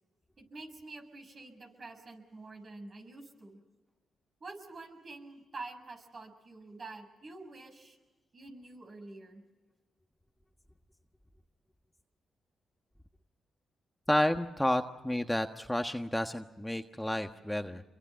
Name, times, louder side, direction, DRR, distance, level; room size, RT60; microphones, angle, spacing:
voice 1, 0.4-3.6 4.4-8.0 8.3-9.4, right 3 dB, 50° right, 5 dB, 6.4 m, -47 dB
voice 2, 14.1-17.8, left 1 dB, 10° left, 6 dB, 1.4 m, -31 dB
27.0 x 23.5 x 5.8 m, 1.1 s
supercardioid pair, 55°, 0 cm